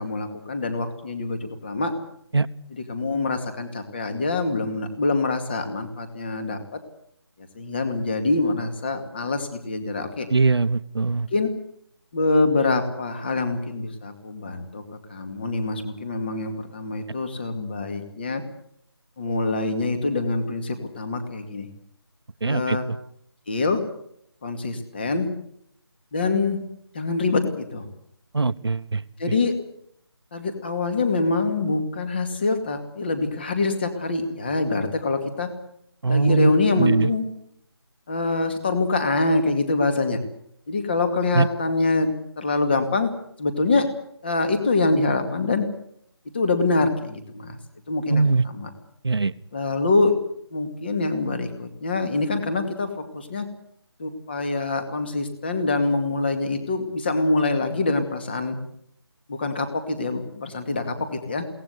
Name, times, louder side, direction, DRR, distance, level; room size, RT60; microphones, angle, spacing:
voice 1, 0.0-1.9 2.7-6.8 7.4-10.3 11.3-11.5 12.1-18.4 19.2-21.7 22.4-22.8 23.5-23.8 24.4-25.3 26.1-26.6 26.9-27.8 29.2-29.6 30.3-35.5 36.1-37.3 38.1-40.2 40.7-43.1 43.4-43.9 44.2-45.7 46.3-47.6 47.9-48.7 49.5-50.2 50.5-53.5 54.0-58.6 59.3-61.4, left 3 dB, 25° left, 7 dB, 2.3 m, -25 dB
voice 2, 10.3-11.3 22.4-22.8 28.3-29.0 36.0-36.5 36.8-37.1 41.4-41.5 48.1-48.4 49.0-49.3, right 4 dB, 70° right, 14 dB, 1.1 m, -21 dB
22.5 x 18.0 x 8.2 m, 0.71 s
figure-of-eight pair, 175°, 14 cm